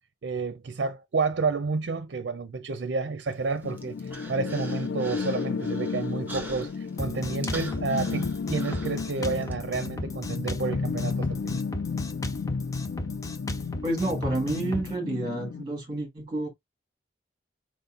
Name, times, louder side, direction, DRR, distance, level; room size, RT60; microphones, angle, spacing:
voice 1, 0.2-11.6, right 4 dB, 80° right, 0.5 m, -30 dB
Human voice, 3.3-9.5, right 2 dB, 10° right, 1.1 m, -44 dB
sound 1, 3.6-15.6, left 5 dB, 80° left, 0.4 m, -32 dB
Drum kit, 7.0-14.9, left 1 dB, 20° left, 0.6 m, -36 dB
voice 2, 13.8-16.5, right 1 dB, 25° right, 1.7 m, -29 dB
4.7 x 4.0 x 2.4 m
head